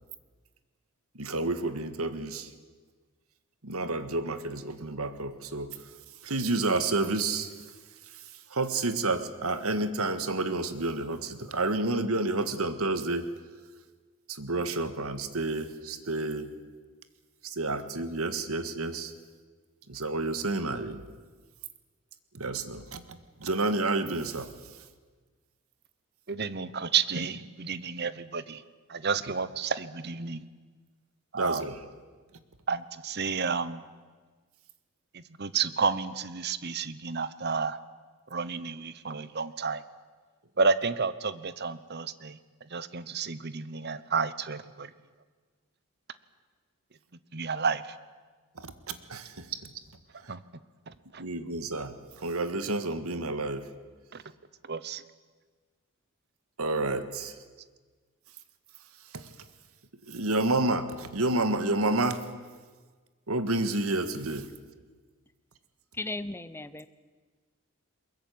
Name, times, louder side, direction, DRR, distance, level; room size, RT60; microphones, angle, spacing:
voice 1, 1.2-2.5 3.6-5.9 6.2-7.5 8.5-13.3 14.3-16.5 17.4-19.1 19.9-21.0 22.3-24.5 31.3-31.8 48.6-49.7 50.2-50.3 51.2-53.7 56.6-57.4 59.1-59.3 60.1-62.3 63.3-64.5, right 2 dB, 75° right, 11 dB, 1.8 m, -30 dB
voice 2, 26.3-28.6 28.9-30.4 31.3-31.6 32.7-33.8 35.1-37.8 38.3-39.8 40.6-44.9 47.3-48.0 50.3-50.4 50.9-51.3 54.1-54.2 54.6-55.0, right 5 dB, 50° right, 15 dB, 1.0 m, -31 dB
voice 3, 66.0-66.9, left 2 dB, 10° left, 13 dB, 0.7 m, -36 dB
22.5 x 21.5 x 9.5 m, 1.4 s
head